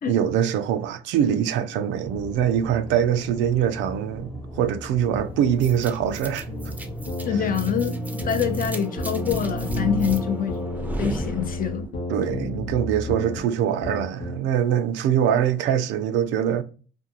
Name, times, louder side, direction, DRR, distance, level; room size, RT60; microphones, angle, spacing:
voice 1, 0.1-4.3 4.6-6.5 7.3-7.4 12.1-16.6, right 9 dB, 80° right, 0.4 m, -23 dB
Aircraft / Engine, 2.1-7.1, equal, 10° left, 0.9 m, -38 dB
sound 1, 5.6-12.0, right 2 dB, 10° right, 0.5 m, -33 dB
sound 2, 6.5-8.7 9.0-13.4 13.8-14.4, left 1 dB, 80° left, 0.9 m, -31 dB
voice 2, 7.2-10.6 11.0-11.8, left 8 dB, 50° left, 0.6 m, -26 dB
2.5 x 2.2 x 2.9 m
supercardioid pair, 75°, 19 cm